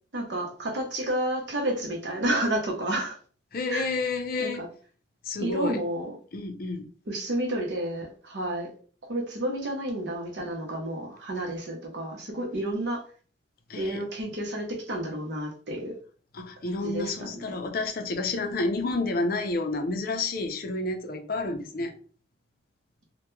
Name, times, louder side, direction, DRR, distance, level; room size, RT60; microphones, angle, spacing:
voice 1, 0.1-3.2 3.7-3.9 4.4-4.7 5.4-6.2 7.1-8.7 9.0-13.0 13.8-16.0 16.6-17.6, right 1 dB, 70° right, 0 dB, 0.8 m, -31 dB
voice 2, 3.5-4.6 5.2-5.8 6.3-6.9 13.7-14.0 16.3-21.9, left 3 dB, 55° left, 5 dB, 0.5 m, -30 dB
2.2 x 2.2 x 3.0 m, 0.42 s
head